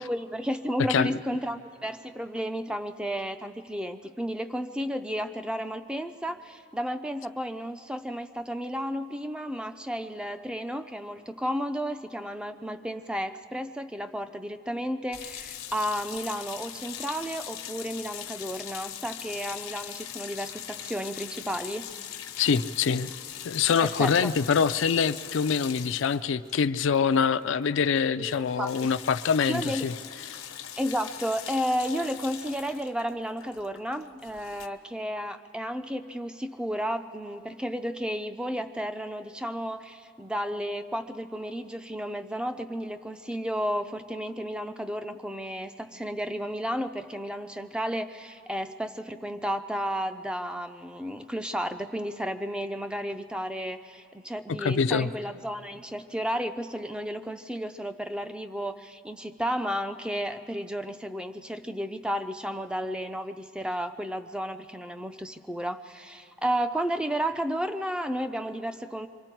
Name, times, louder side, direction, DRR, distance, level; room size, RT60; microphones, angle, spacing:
voice 1, 0.0-21.9 23.8-24.3 28.2-28.9 29.4-29.9 30.8-69.1, equal, 5° right, 8 dB, 0.4 m, -32 dB
sound 1, 15.1-27.5 27.8-28.0 28.2-34.7, left 10 dB, 90° left, 1.1 m, -41 dB
voice 2, 22.4-23.1 23.4-29.9 54.5-55.1, left 6 dB, 60° left, 13 dB, 0.4 m, -25 dB
25.5 x 24.5 x 4.5 m, 2.6 s
head